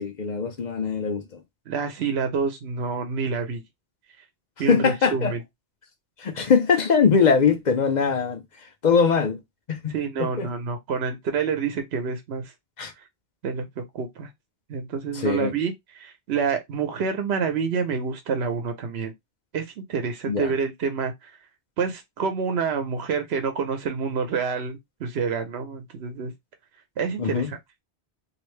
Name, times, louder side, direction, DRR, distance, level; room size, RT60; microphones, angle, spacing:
voice 1, 0.0-1.4 4.7-5.3 6.2-8.4 8.8-9.4 9.7-10.5 12.8-12.9 15.1-15.5 20.3-20.5 27.2-27.5, left 5 dB, 50° left, 0.7 m, -22 dB
voice 2, 1.7-3.6 4.6-5.4 9.9-12.5 13.4-14.3 14.7-19.1 19.5-21.1 21.8-26.3 27.0-27.6, right 5 dB, 70° right, 1.0 m, -28 dB
2.8 x 2.6 x 3.2 m
omnidirectional pair, 1.1 m